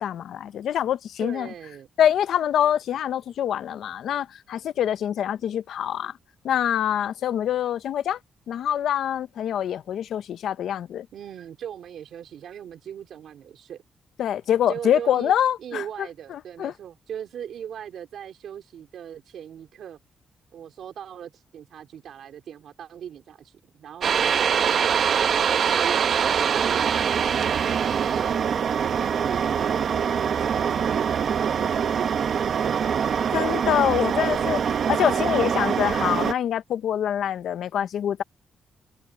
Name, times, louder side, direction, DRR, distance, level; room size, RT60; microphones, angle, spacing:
voice 1, 0.0-1.5 2.0-6.1 6.4-8.2 8.5-11.1 14.2-16.7 33.3-34.6 35.0-38.2, left 10 dB, 85° left, 0.6 m, -25 dB
voice 2, 1.2-1.9 11.1-13.8 14.7-15.3 15.6-20.0 20.5-25.1 25.7-28.5 28.8-32.2 32.5-33.1 34.1-34.8 35.4-35.6, right 9 dB, 75° right, 3.2 m, -39 dB
sound 1, 24.0-36.3, right 7 dB, 55° right, 0.8 m, -23 dB
wide cardioid pair, 155°, 0 cm